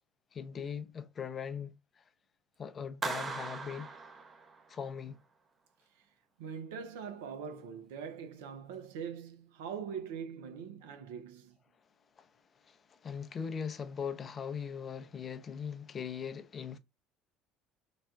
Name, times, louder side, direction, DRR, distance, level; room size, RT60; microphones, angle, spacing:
voice 1, 0.3-2.0 2.6-3.9 4.7-5.2 12.2-16.8, left 7 dB, 40° left, 0.5 m, -40 dB
Clapping, 3.0-4.9, right 4 dB, 35° right, 0.6 m, -39 dB
voice 2, 6.4-11.6, right 7 dB, 75° right, 0.5 m, -42 dB
4.0 x 2.2 x 2.2 m
hypercardioid pair, 65°, 0 cm